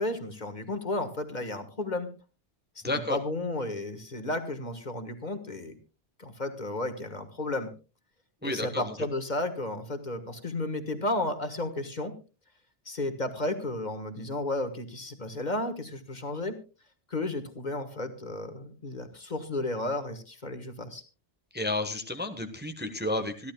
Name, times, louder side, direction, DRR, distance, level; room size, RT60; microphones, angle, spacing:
voice 1, 0.0-2.1 2.8-5.8 6.2-7.7 8.4-12.1 12.8-16.6 17.1-21.0, left 2 dB, 40° left, 8 dB, 1.6 m, -33 dB
voice 2, 2.8-3.2 8.4-8.9 21.5-23.5, left 1 dB, 10° right, 6 dB, 1.1 m, -31 dB
26.0 x 11.5 x 2.3 m, 0.32 s
omnidirectional pair, 1.1 m